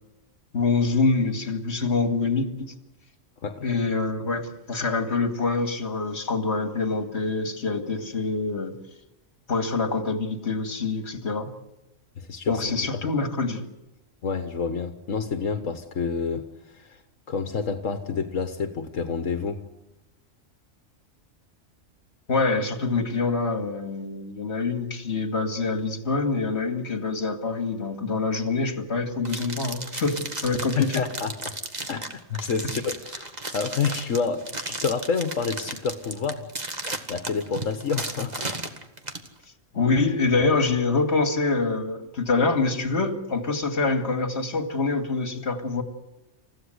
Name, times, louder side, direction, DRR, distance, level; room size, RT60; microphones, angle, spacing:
voice 1, 0.5-2.7 3.6-8.7 9.5-11.5 12.5-13.7 22.3-31.0 39.7-45.8, left 3 dB, 55° left, 2.5 m, -25 dB
voice 2, 12.2-13.1 14.2-17.0 17.3-19.6 30.8-31.5 31.9-36.5 37.1-38.5, left 5 dB, 85° left, 1.7 m, -29 dB
sound 1, 29.2-39.3, right 2 dB, 35° right, 2.0 m, -34 dB
29.0 x 16.0 x 8.0 m
omnidirectional pair, 1.3 m